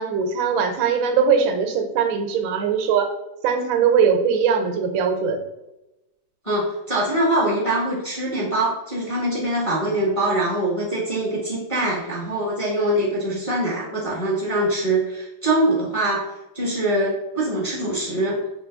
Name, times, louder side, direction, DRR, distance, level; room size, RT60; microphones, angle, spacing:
voice 1, 0.0-3.1 3.4-5.4, right 6 dB, 80° right, 5 dB, 1.3 m, -20 dB
voice 2, 6.4-16.3 16.5-18.4, right 1 dB, 20° left, -7 dB, 0.9 m, -23 dB
4.5 x 2.9 x 3.4 m, 0.96 s
omnidirectional pair, 2.1 m